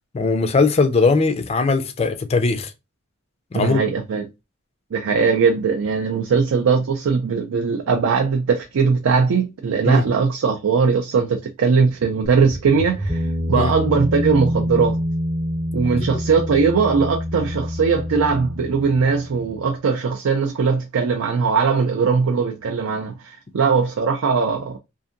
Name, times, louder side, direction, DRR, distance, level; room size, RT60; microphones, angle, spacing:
voice 1, 0.1-2.7 3.5-3.8 9.8-10.0 13.5-13.7 16.0-16.1, left 4 dB, 30° left, 0.3 m, -19 dB
voice 2, 3.5-4.3 4.9-15.0 15.7-24.8, right 5 dB, 85° right, 0.4 m, -20 dB
sound 1, 12.2-19.7, equal, 20° right, 0.5 m, -26 dB
2.7 x 2.5 x 2.5 m
head